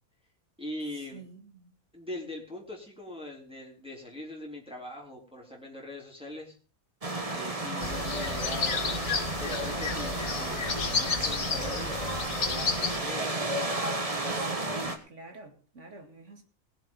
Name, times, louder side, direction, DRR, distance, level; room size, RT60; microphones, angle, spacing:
voice 1, 0.6-1.3 1.9-6.6 7.3-8.8 9.4-11.9 12.5-13.6, left 1 dB, 5° right, 3.7 m, -42 dB
voice 2, 1.1-1.7 14.3-16.4, right 3 dB, 65° right, 2.6 m, -48 dB
sound 1, 7.0-15.0, right 2 dB, 25° right, 1.7 m, -32 dB
sound 2, 7.8-13.0, left 5 dB, 60° left, 1.7 m, -32 dB
20.0 x 7.4 x 5.4 m
omnidirectional pair, 1.4 m